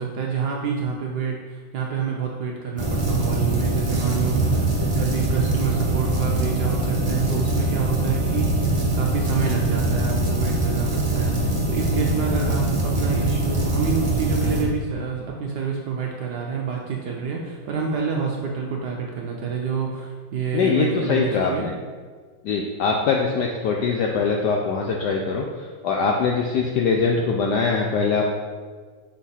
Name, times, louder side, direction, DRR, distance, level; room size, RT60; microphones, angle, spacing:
voice 1, 0.0-21.7, right 5 dB, 70° right, -1 dB, 1.0 m, -28 dB
sound 1, 2.8-14.6, right 2 dB, 35° right, 0.5 m, -23 dB
voice 2, 20.5-21.7 22.4-28.2, left 5 dB, 80° left, 0 dB, 0.9 m, -22 dB
5.7 x 4.2 x 4.1 m, 1.5 s
omnidirectional pair, 2.3 m